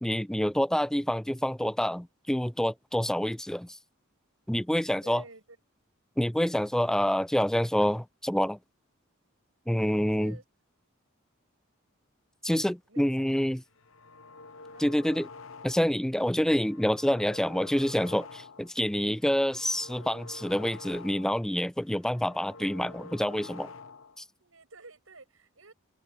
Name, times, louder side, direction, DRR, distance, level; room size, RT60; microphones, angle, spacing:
voice 1, 0.0-3.8 4.5-5.2 6.2-8.6 9.7-10.4 12.4-13.6 14.8-15.3 15.6-23.7 24.2-24.3, equal, 5° left, 0.4 m, -27 dB
voice 2, 5.0-5.6 10.2-10.4 12.8-13.3 14.7-15.0 24.4-25.7, right 3 dB, 75° right, 7.6 m, -51 dB
sound 1, 13.7-16.1 16.4-18.8 19.1-21.5 21.8-24.2, left 4 dB, 70° left, 0.9 m, -48 dB
head